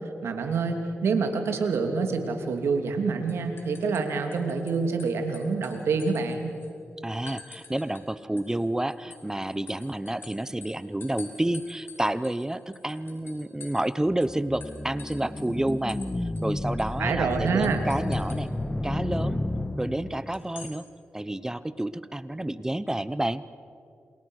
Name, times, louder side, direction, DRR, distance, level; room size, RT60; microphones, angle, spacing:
voice 1, 0.2-6.5 17.0-17.8, right 4 dB, 90° right, 5 dB, 2.9 m, -27 dB
sound 1, 2.7-3.0 3.3-4.7 5.0-6.7 7.3-8.1 8.4-13.9 14.2-14.3 14.6-16.1 16.4-16.5 16.8-17.0 17.6-18.4 20.3-20.8, left 4 dB, 60° left, 5.5 m, -47 dB
voice 2, 7.0-18.5 18.8-19.4 19.8-20.9 21.1-23.4, right 1 dB, 15° right, 15 dB, 0.9 m, -29 dB
sound 2, 14.1-20.4, left 1 dB, 20° left, 1.4 m, -31 dB
29.5 x 28.0 x 6.5 m, 2.5 s
cardioid pair, 65°, 4 cm